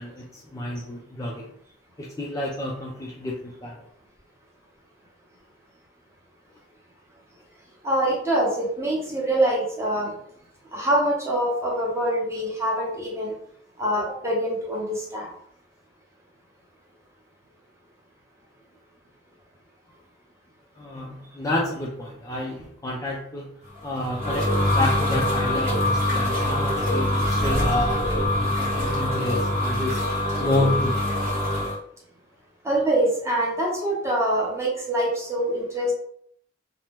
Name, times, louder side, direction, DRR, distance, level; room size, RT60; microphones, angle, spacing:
voice 1, 0.0-1.5 2.0-3.8 20.8-23.5 23.8-30.0 30.4-31.1, left 1 dB, 15° left, -3 dB, 0.3 m, -29 dB
voice 2, 7.8-10.1 10.7-13.3 13.8-15.3 32.6-35.9, right 1 dB, 15° right, -4 dB, 0.9 m, -24 dB
sound 1, 23.8-31.7, left 1 dB, 40° right, 1.1 m, -24 dB
2.8 x 2.0 x 3.4 m, 0.66 s
head